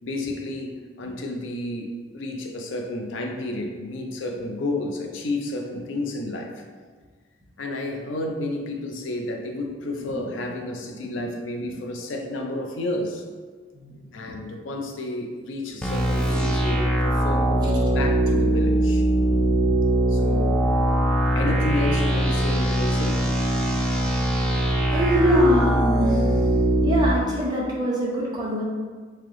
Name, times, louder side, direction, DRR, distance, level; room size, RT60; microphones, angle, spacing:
voice 1, 0.0-6.6 7.6-13.2 14.1-19.0 20.1-20.7 21.3-23.3, left 2 dB, 70° left, 3 dB, 0.5 m, -31 dB
sound 1, 15.8-27.1, right 1 dB, 5° left, 0.5 m, -21 dB
voice 2, 24.9-26.6 26.8-28.6, equal, 20° right, -5 dB, 0.8 m, -23 dB
3.3 x 2.8 x 3.6 m, 1.5 s
head